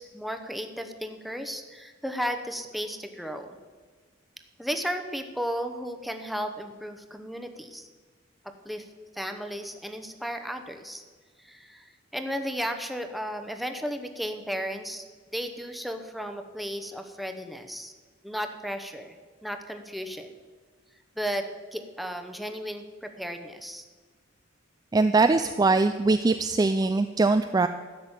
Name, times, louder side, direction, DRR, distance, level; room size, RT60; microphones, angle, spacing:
voice 1, 0.0-3.6 4.6-7.9 8.4-8.9 9.1-11.0 11.4-15.1 15.3-17.9 18.2-20.4 21.2-23.8, equal, ahead, 6 dB, 0.8 m, -34 dB
voice 2, 24.9-27.7, right 3 dB, 20° right, 9 dB, 0.3 m, -22 dB
12.5 x 6.1 x 8.8 m, 1.5 s
head